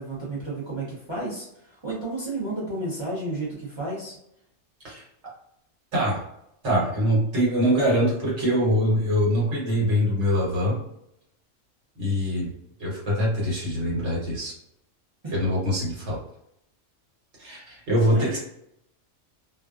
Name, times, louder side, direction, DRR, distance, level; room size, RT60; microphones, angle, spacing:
voice 1, 0.0-4.1 15.2-15.4 18.1-18.4, right 2 dB, 30° right, -5 dB, 0.5 m, -32 dB
voice 2, 6.6-10.8 12.0-12.5 12.8-14.5 15.3-16.2 17.4-18.4, equal, 65° right, -5 dB, 1.2 m, -23 dB
2.4 x 2.2 x 2.3 m, 0.76 s
omnidirectional pair, 1.3 m